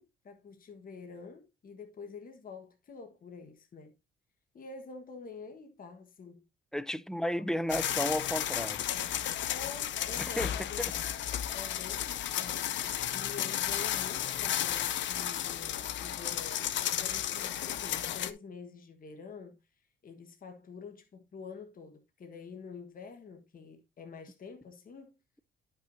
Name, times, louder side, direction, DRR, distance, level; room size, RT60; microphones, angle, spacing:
voice 1, 0.0-3.9 4.5-6.4 9.5-11.0 11.5-25.2, left 5 dB, 45° left, 1.4 m, -47 dB
voice 2, 6.7-8.9 10.2-10.5, equal, 5° left, 0.4 m, -33 dB
sound 1, 7.7-18.3, left 11 dB, 70° left, 0.7 m, -33 dB
11.5 x 5.8 x 2.7 m
cardioid pair, 90°, 20 cm